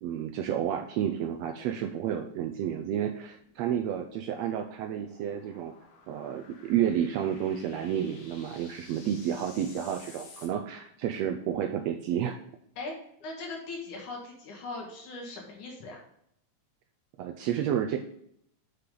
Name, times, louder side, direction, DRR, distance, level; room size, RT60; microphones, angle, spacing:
voice 1, 0.0-5.7 6.1-12.4 17.2-18.0, right 9 dB, 75° right, 5 dB, 1.6 m, -31 dB
sound 1, 3.3-10.5, left 4 dB, 65° left, 2.6 m, -54 dB
voice 2, 9.0-9.3 12.8-12.9 13.2-16.0, left 3 dB, 80° left, -2 dB, 3.6 m, -40 dB
7.5 x 6.7 x 3.8 m, 0.70 s
omnidirectional pair, 3.4 m